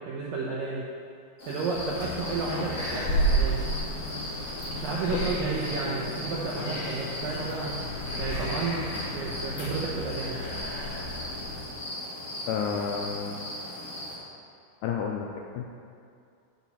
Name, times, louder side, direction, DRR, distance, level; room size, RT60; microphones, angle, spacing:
voice 1, 0.1-0.9 1.5-3.6 4.8-7.8 8.2-10.4, right 4 dB, 80° right, -5 dB, 2.0 m, -32 dB
sound 1, 1.4-14.2, left 1 dB, 70° left, 0.9 m, -38 dB
sound 2, 1.7-11.6, right 1 dB, 50° left, 1.8 m, -32 dB
voice 2, 12.5-13.5 14.8-15.3 15.5-15.7, left 6 dB, 85° left, 1 dB, 2.3 m, -30 dB
8.9 x 8.4 x 4.1 m, 2.4 s
omnidirectional pair, 5.1 m